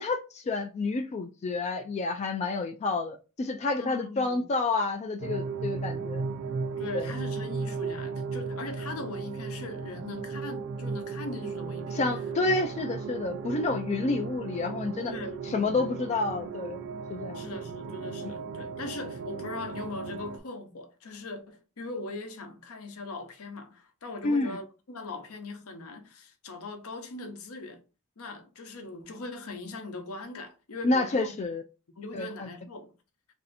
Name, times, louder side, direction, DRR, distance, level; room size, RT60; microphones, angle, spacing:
voice 1, 0.0-6.2 6.9-7.1 11.9-15.1 15.4-16.8 17.1-17.5 18.2-18.3 24.2-24.6 30.8-31.6 32.1-32.5, left 3 dB, 30° left, 0.3 m, -29 dB
voice 2, 3.8-4.4 6.8-12.0 15.1-15.9 17.3-27.8 28.2-31.4 32.0-32.9, left 2 dB, 70° left, 0.8 m, -40 dB
sound 1, 5.2-20.4, right 5 dB, 55° right, 0.3 m, -36 dB
3.2 x 2.7 x 4.0 m
head